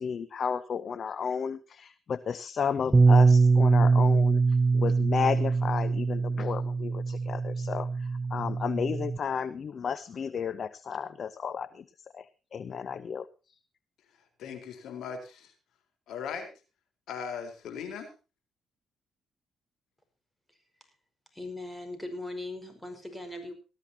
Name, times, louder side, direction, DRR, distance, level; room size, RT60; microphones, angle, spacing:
voice 1, 0.0-11.8 12.1-13.6, left 6 dB, 50° left, 16 dB, 0.8 m, -33 dB
Bass guitar, 2.9-9.2, right 4 dB, 20° right, 0.9 m, -23 dB
voice 2, 14.4-15.5 16.1-16.5 17.1-18.1, left 6 dB, 75° left, 7 dB, 4.2 m, -38 dB
voice 3, 21.3-23.5, left 2 dB, 5° left, 6 dB, 5.1 m, -39 dB
19.0 x 13.5 x 2.9 m, 0.32 s
cardioid pair, 90°, 0 cm